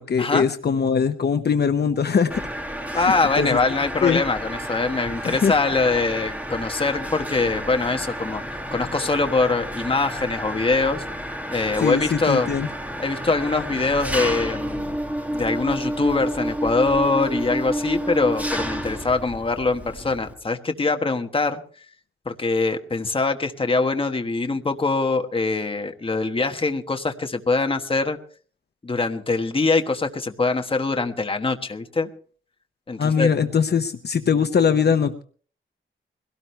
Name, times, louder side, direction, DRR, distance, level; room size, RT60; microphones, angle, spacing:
voice 1, 0.0-2.4 2.9-3.6 4.0-4.2 5.2-5.5 11.8-12.7 33.0-35.2, left 6 dB, 55° left, 7 dB, 0.9 m, -21 dB
Mechanisms, 2.3-20.3, equal, 5° right, 1.8 m, -30 dB
voice 2, 2.9-8.4 8.7-11.0 11.5-12.5 13.0-15.0 15.3-21.6 22.2-28.2 28.8-32.1 32.9-33.3, left 3 dB, 25° left, 5 dB, 1.3 m, -23 dB
22.0 x 17.5 x 3.3 m, 0.43 s
wide cardioid pair, 170°, 21 cm